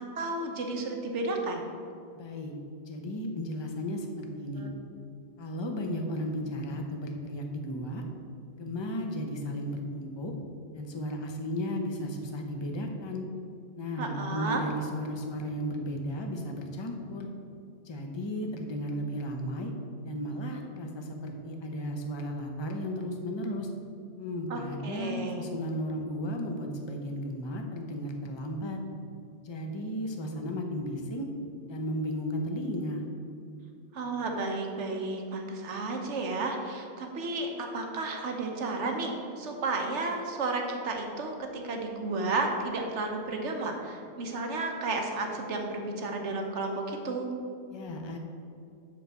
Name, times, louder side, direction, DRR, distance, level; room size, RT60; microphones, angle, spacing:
voice 1, 0.0-1.6 4.6-4.7 14.0-14.6 24.5-25.5 33.9-47.3, right 3 dB, 85° right, 2 dB, 1.3 m, -32 dB
voice 2, 2.1-2.5 2.8-4.7 5.4-8.1 8.6-10.3 10.7-13.2 13.7-17.3 17.8-19.7 20.0-23.7 24.2-28.8 29.4-31.3 31.7-33.1 47.7-48.2, equal, 25° left, 3 dB, 0.8 m, -34 dB
7.4 x 4.6 x 6.8 m, 2.4 s
omnidirectional pair, 1.2 m